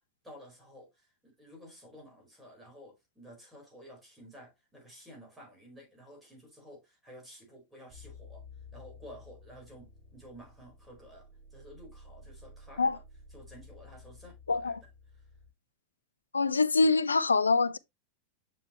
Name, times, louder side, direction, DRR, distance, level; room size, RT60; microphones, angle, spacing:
voice 1, 0.2-8.4 8.7-13.0 13.3-14.8 15.1-15.3, equal, 5° right, 4.5 m, -52 dB
sound 1, 7.9-15.5, left 3 dB, 35° right, 3.1 m, -53 dB
voice 2, 14.5-14.8 16.3-17.8, left 3 dB, 75° left, 0.4 m, -25 dB
7.2 x 5.6 x 3.1 m
figure-of-eight pair, 90°, 0 cm